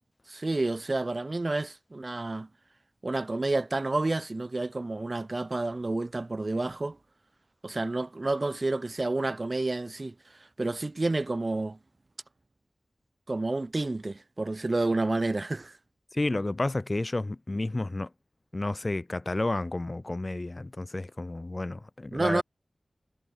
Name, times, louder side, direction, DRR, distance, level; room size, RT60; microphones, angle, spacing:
voice 1, 0.3-2.5 3.0-7.0 7.6-10.1 10.6-11.8 13.3-15.7 22.1-22.4, right 2 dB, 40° right, 0.4 m, -29 dB
voice 2, 16.1-18.1 18.5-22.4, left 2 dB, 30° left, 0.5 m, -31 dB
wide cardioid pair, 70°, 0 cm